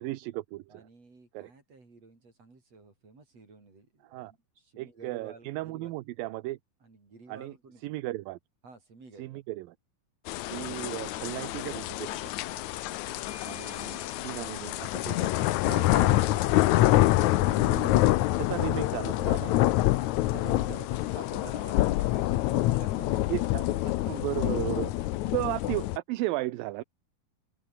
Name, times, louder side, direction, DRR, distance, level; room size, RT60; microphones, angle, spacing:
voice 1, 0.0-0.9 1.3-1.5 4.0-4.3 4.8-6.6 7.3-7.5 7.8-8.4 9.2-9.8 10.5-12.3 13.4-16.6 17.4-19.7 20.3-20.9 23.3-23.6 24.1-24.9 25.3-26.8, right 18 dB, 80° right, 2.5 m, -35 dB
voice 2, 0.7-5.9 6.8-7.9 8.6-9.4 20.4-20.7 21.0-24.2 25.2-25.4, right 3 dB, 40° right, 8.0 m, -51 dB
sound 1, 10.3-26.0, left 16 dB, 75° left, 1.7 m, -26 dB
Doorbell, 12.1-17.4, left 4 dB, 45° left, 6.9 m, -54 dB
open air
omnidirectional pair, 4.2 m